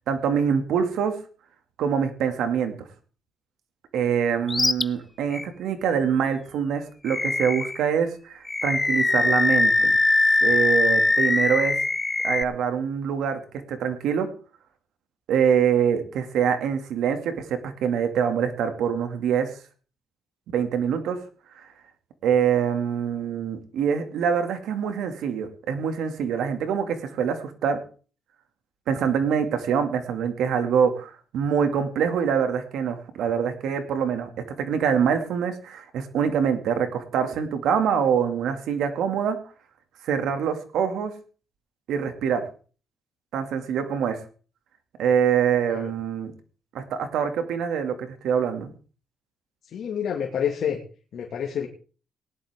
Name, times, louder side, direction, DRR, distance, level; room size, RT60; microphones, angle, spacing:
voice 1, 0.1-1.1 1.8-2.7 3.9-9.9 10.4-11.8 12.2-13.4 13.7-14.3 15.3-19.5 20.5-21.2 21.6-21.7 22.2-27.8 28.9-34.3 34.6-39.4 40.0-41.1 41.9-42.4 43.3-44.2 45.0-46.3 46.7-48.7, right 7 dB, 80° right, 7 dB, 2.2 m, -24 dB
Animal, 4.5-4.8 5.3-5.5 7.1-7.8 8.5-12.4, left 2 dB, 20° left, 0.6 m, -21 dB
voice 2, 49.7-50.8 51.1-51.7, left 8 dB, 65° left, 0 dB, 2.0 m, -28 dB
18.0 x 11.0 x 3.6 m, 0.38 s
cardioid pair, 90°, 0 cm